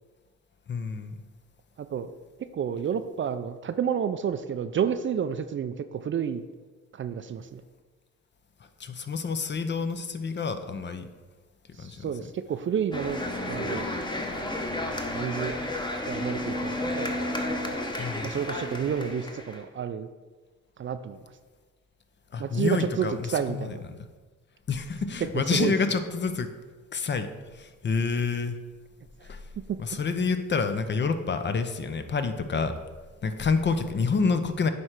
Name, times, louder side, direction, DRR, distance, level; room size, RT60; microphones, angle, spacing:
voice 1, 0.7-1.1 8.8-11.1 11.8-12.1 18.0-18.4 22.3-23.8 24.7-26.5 26.9-28.6 29.2-29.4 29.8-32.7 33.2-34.7, left 4 dB, 35° left, 9 dB, 0.7 m, -28 dB
voice 2, 1.8-2.1 2.5-6.4 6.9-7.6 11.8-13.9 15.1-15.6 16.1-17.1 18.2-20.1 20.8-21.2 22.4-23.8 25.6-25.7 29.2-29.3 29.9-30.0, right 8 dB, 40° right, 11 dB, 0.4 m, -30 dB
sound 1, 12.9-19.6, left 1 dB, 15° left, 1.0 m, -32 dB
9.4 x 3.3 x 5.8 m, 1.3 s
cardioid pair, 90°, 30 cm